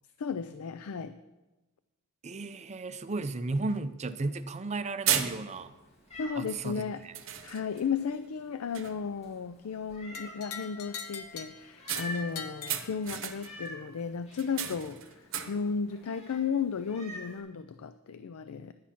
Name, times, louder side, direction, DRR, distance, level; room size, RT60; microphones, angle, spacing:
voice 1, 0.2-1.2 6.2-7.0 7.4-18.7, left 6 dB, 70° left, 11 dB, 0.4 m, -34 dB
voice 2, 2.2-5.7 6.4-7.1, right 3 dB, 30° right, 11 dB, 0.5 m, -34 dB
sound 1, 3.7-3.8 4.5-4.7 5.1-5.8 6.5-6.7 7.1-7.9 8.3-8.5 8.7-9.2 11.9-13.7 14.3-15.8, right 10 dB, 60° right, 0.9 m, -35 dB
Meow, 5.4-17.4, left 1 dB, 30° left, 2.1 m, -49 dB
sound 2, 10.1-13.5, left 6 dB, 90° left, 0.9 m, -43 dB
11.0 x 8.4 x 5.8 m, 1.1 s
head